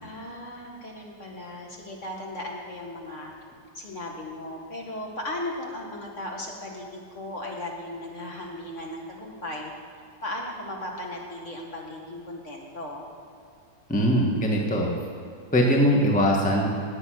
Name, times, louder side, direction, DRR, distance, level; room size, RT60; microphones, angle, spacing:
voice 1, 0.0-3.3 3.7-6.9 7.1-9.7 10.2-13.0, left 1 dB, 40° left, -1 dB, 2.1 m, -36 dB
voice 2, 13.9-14.9 15.5-16.7, equal, 5° left, -1 dB, 1.3 m, -21 dB
18.5 x 8.1 x 6.3 m, 2.5 s
omnidirectional pair, 2.1 m